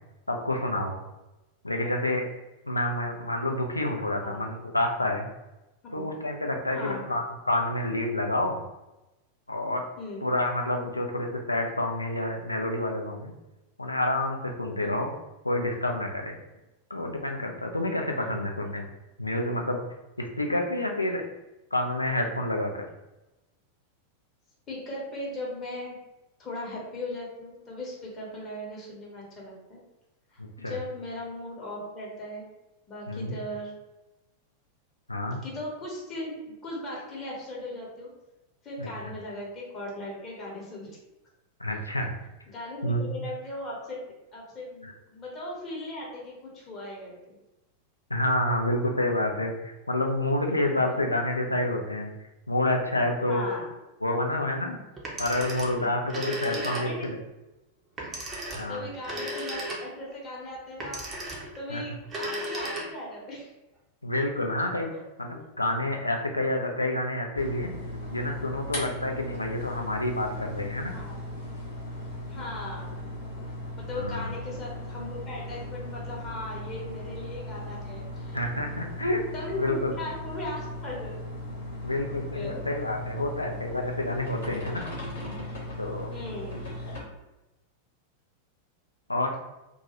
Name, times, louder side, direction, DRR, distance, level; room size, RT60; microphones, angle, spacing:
voice 1, 0.3-1.0 1.6-2.3 2.7-5.3 5.9-8.6 9.5-9.8 10.2-13.3 13.8-15.1 15.4-16.4 16.9-18.9 19.2-19.8 20.2-21.2 21.7-22.8 30.4-30.8 33.1-33.4 35.1-35.4 38.8-38.9 41.6-42.2 42.8-43.3 44.8-44.9 48.1-52.1 52.5-53.5 54.0-54.8 55.2-57.2 58.5-58.9 61.7-61.8 64.0-64.9 65.2-67.7 68.1-70.9 73.9-74.3 78.3-79.2 79.6-79.9 81.8-84.8 85.8-86.1 89.1-89.4, left 1 dB, 85° left, 3 dB, 0.3 m, -28 dB
voice 2, 6.7-7.1 10.0-10.3 14.8-15.0 18.1-18.8 24.7-25.9 26.4-29.8 30.3-32.5 32.9-33.7 35.4-36.3 36.6-38.1 38.6-40.9 42.5-44.0 44.3-47.4 50.7-51.0 53.3-53.7 55.6-55.9 56.4-57.1 58.5-61.3 61.6-63.5 65.3-65.5 69.2-69.3 70.9-71.2 72.3-73.1 73.8-78.4 79.3-81.1 82.3-82.7 86.1-86.6, left 1 dB, 30° left, -4 dB, 0.8 m, -38 dB
Telephone, 55.0-57.2 58.0-60.1 60.8-61.6 62.0-63.2, right 1 dB, 20° right, 0.6 m, -35 dB
sound 1, 67.4-87.0, left 1 dB, 65° left, 0.9 m, -37 dB
2.2 x 2.1 x 2.8 m, 1.0 s
figure-of-eight pair, 90°, 0 cm